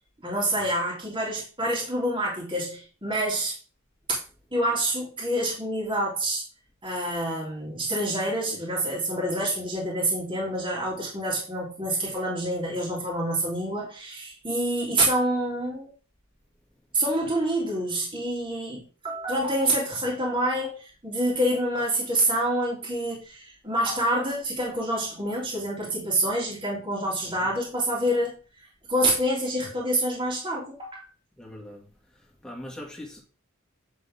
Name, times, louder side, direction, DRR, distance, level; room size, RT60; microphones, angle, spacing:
voice 1, 0.2-3.6 4.5-6.4 6.8-15.9 16.9-28.4 28.9-31.1, right 1 dB, 25° right, 3.4 m, -27 dB
voice 2, 27.2-27.6 31.4-31.9 32.2-33.2, left 1 dB, 5° left, 2.5 m, -42 dB
8.8 x 7.4 x 3.8 m
head